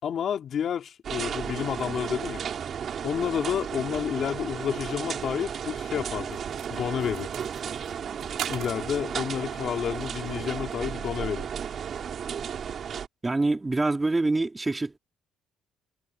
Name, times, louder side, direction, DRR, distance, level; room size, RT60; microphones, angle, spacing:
voice 1, 0.0-2.4 3.0-6.4 6.7-7.3 8.5-11.5, left 8 dB, 40° left, 3.8 m, -30 dB
sound 1, 1.0-13.1, right 7 dB, 40° right, 4.5 m, -34 dB
sound 2, 6.3-11.0, right 12 dB, 60° right, 5.5 m, -43 dB
voice 2, 13.2-15.0, right 2 dB, 15° right, 3.3 m, -25 dB
cardioid pair, 150°, 0 cm